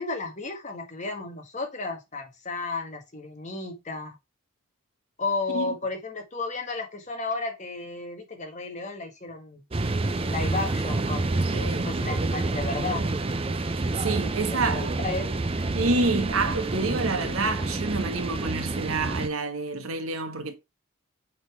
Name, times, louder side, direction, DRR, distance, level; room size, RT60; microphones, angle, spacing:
voice 1, 0.0-4.2 5.2-9.6 10.2-13.1 14.4-15.4, left 3 dB, 35° left, 1.4 m, -33 dB
sound 1, 9.7-19.3, right 2 dB, 25° right, 0.5 m, -28 dB
voice 2, 11.5-11.9 13.9-14.9 15.7-20.6, right 3 dB, 80° right, 1.3 m, -28 dB
6.5 x 3.9 x 4.4 m
head